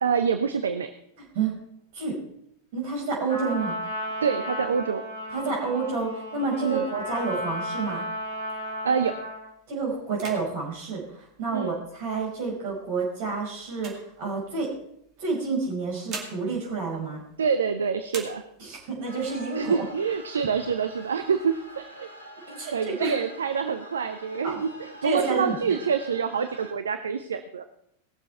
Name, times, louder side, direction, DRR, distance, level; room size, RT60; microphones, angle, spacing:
voice 1, 0.0-0.9 4.2-5.0 6.6-6.8 8.8-9.2 11.5-11.7 17.4-18.4 19.6-22.1 22.7-27.6, right 6 dB, 70° right, 9 dB, 0.6 m, -26 dB
voice 2, 1.2-1.6 1.9-2.2 2.7-3.8 5.3-8.0 9.7-14.7 15.2-17.2 18.6-19.8 22.5-23.1 24.4-24.6 25.0-25.8, right 4 dB, 50° right, -1 dB, 4.9 m, -29 dB
Trumpet, 3.3-9.5, equal, 85° right, 3.9 m, -34 dB
sound 1, 6.8-9.0 9.5-9.7 10.1-12.0 12.7-14.8 15.7-17.7 18.0-18.9 19.4-19.5 19.7-20.4 20.9-21.8, right 4 dB, 35° right, 2.4 m, -45 dB
sound 2, 19.0-26.7, equal, 85° left, 1.8 m, -45 dB
19.0 x 7.0 x 4.5 m, 0.75 s
figure-of-eight pair, 90°, 0 cm